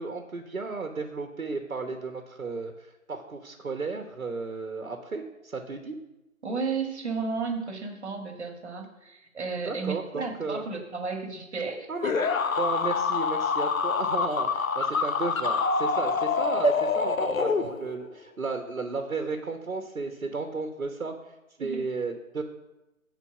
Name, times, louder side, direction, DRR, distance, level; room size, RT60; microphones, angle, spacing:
voice 1, 0.0-2.7 3.1-6.0 9.7-10.6 11.9-12.3 12.6-21.1 21.6-22.4, right 3 dB, 70° right, 5 dB, 1.3 m, -33 dB
voice 2, 6.4-12.1 16.4-16.5 21.6-21.9, right 4 dB, 50° right, 4 dB, 1.7 m, -33 dB
sound 1, 12.0-18.1, left 5 dB, 70° left, 0.8 m, -26 dB
9.9 x 4.5 x 5.9 m, 0.96 s
figure-of-eight pair, 150°, 42 cm